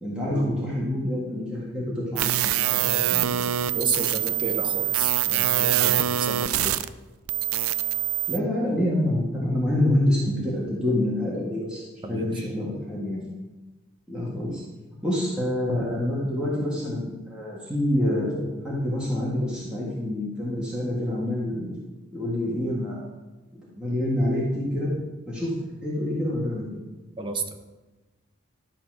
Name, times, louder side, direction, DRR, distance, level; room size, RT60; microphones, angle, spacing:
voice 1, 0.0-3.3 8.3-13.2 14.1-14.6 15.0-21.8 22.1-23.0 23.7-24.9 25.3-25.5 25.8-26.8, left 1 dB, 5° right, -7 dB, 1.6 m, -27 dB
sound 1, 2.2-6.9 7.3-8.4, right 11 dB, 90° right, 0.4 m, -24 dB
voice 2, 3.7-6.8 12.0-12.3 27.2-27.4, right 3 dB, 25° right, 5 dB, 0.8 m, -31 dB
11.5 x 4.2 x 6.1 m, 1.2 s
head